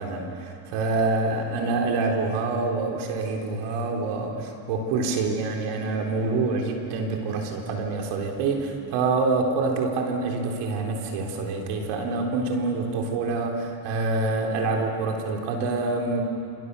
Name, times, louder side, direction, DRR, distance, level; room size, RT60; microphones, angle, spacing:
voice 1, 0.0-16.2, right 3 dB, 80° right, 1 dB, 3.9 m, -26 dB
27.0 x 27.0 x 7.0 m, 2.7 s
supercardioid pair, 75°, 49 cm